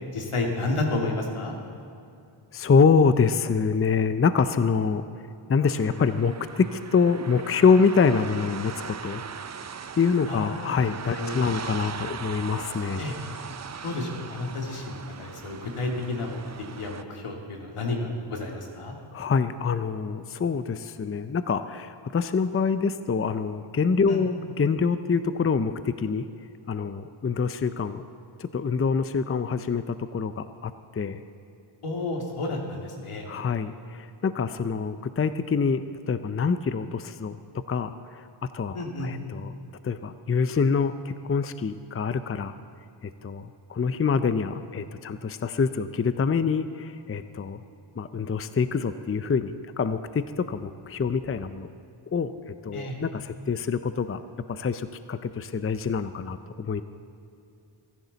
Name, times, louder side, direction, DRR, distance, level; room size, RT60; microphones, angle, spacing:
voice 1, 0.1-1.6 10.3-10.8 11.2-11.4 13.0-13.1 13.8-16.4 16.7-18.9 24.1-24.3 31.8-33.3 38.7-39.1 52.7-52.9, left 2 dB, 85° left, 1 dB, 2.5 m, -31 dB
voice 2, 2.5-5.0 5.5-9.2 10.0-13.0 19.1-26.2 26.7-28.0 28.4-31.2 33.3-37.4 37.7-38.2 38.5-39.5 39.8-42.5 43.0-47.6 48.0-51.7 52.1-52.3 52.6-54.2 54.5-56.8, left 5 dB, 25° left, 11 dB, 0.6 m, -25 dB
sound 1, 5.6-17.0, right 6 dB, 35° right, 0.6 m, -39 dB
24.0 x 11.0 x 4.1 m, 2.6 s
cardioid pair, 65°, 50 cm